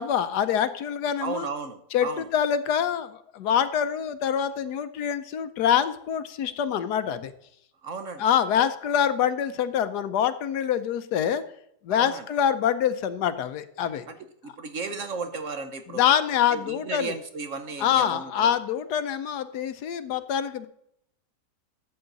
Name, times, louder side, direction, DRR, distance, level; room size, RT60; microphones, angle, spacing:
voice 1, 0.0-1.5 1.9-7.3 8.2-11.4 11.8-14.0 15.9-17.1 17.8-20.7, left 9 dB, 75° left, 12 dB, 1.2 m, -25 dB
voice 2, 1.2-2.3 7.8-8.2 12.0-12.2 14.4-16.0 16.5-18.5, right 4 dB, 55° right, 8 dB, 1.1 m, -34 dB
12.5 x 7.8 x 3.9 m, 0.73 s
omnidirectional pair, 1.8 m